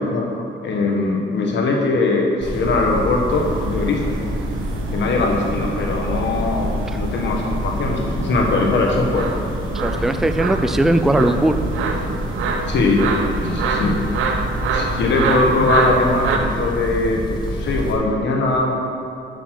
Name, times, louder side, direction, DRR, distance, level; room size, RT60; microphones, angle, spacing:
voice 1, 0.0-4.2 4.9-9.3 12.7-13.1 13.4-14.0 14.7-18.8, left 3 dB, 65° left, 0 dB, 1.4 m, -20 dB
sound 1, 2.4-17.9, equal, 20° left, 1.9 m, -27 dB
sound 2, 3.3-16.4, right 4 dB, 85° right, 0.8 m, -27 dB
voice 2, 9.7-11.6, right 1 dB, ahead, 9 dB, 0.4 m, -19 dB
8.2 x 6.2 x 6.5 m, 2.5 s
cardioid pair, 90°, 20 cm